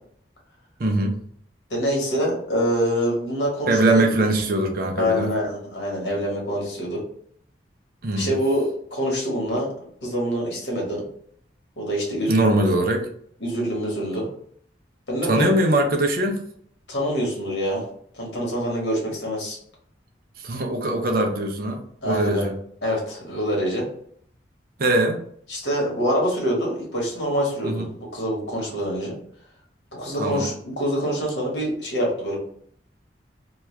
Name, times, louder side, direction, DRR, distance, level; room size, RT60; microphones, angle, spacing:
voice 1, 0.8-1.2 3.7-5.3 8.0-8.3 12.3-13.1 15.2-16.4 20.4-22.5 24.8-25.2 27.6-27.9 30.2-30.5, right 1 dB, 55° right, 3 dB, 0.6 m, -21 dB
voice 2, 1.7-4.0 5.0-7.0 8.1-9.7 10.0-11.0 11.8-12.6 13.4-14.3 15.1-15.5 16.9-17.8 18.1-19.6 22.0-22.5 22.8-23.9 25.5-27.9 28.1-29.2 29.9-32.4, equal, 80° left, -2 dB, 1.3 m, -25 dB
3.0 x 2.3 x 3.1 m, 0.63 s
head